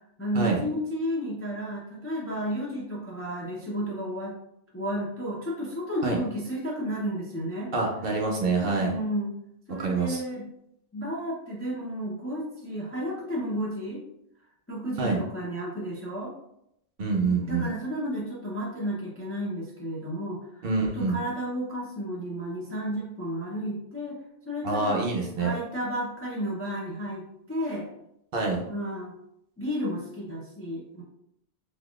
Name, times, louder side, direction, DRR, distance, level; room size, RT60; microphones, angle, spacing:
voice 1, 0.2-4.4 4.7-7.7 8.7-9.4 9.7-10.5 10.9-14.0 14.7-16.3 17.5-20.7 20.9-25.0 25.4-27.9 28.7-29.2 29.6-31.0, equal, 20° left, -5 dB, 0.4 m, -32 dB
voice 2, 7.7-8.9 9.7-10.2 15.0-15.2 17.0-17.7 20.6-21.2 24.6-25.5 28.3-28.6, right 3 dB, 60° right, 0 dB, 0.8 m, -26 dB
3.8 x 2.8 x 2.4 m, 0.79 s
omnidirectional pair, 1.2 m